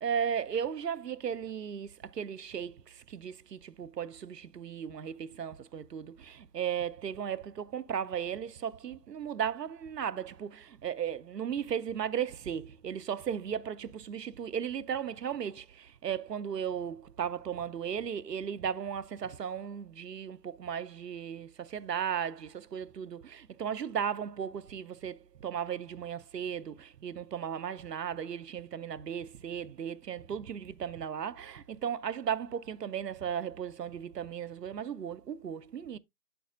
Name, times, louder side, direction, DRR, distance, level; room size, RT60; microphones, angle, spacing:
voice 1, 0.0-2.8 3.1-36.0, right 8 dB, 90° right, 0.6 m, -36 dB
8.5 x 7.0 x 2.4 m
figure-of-eight pair, 175°, 48 cm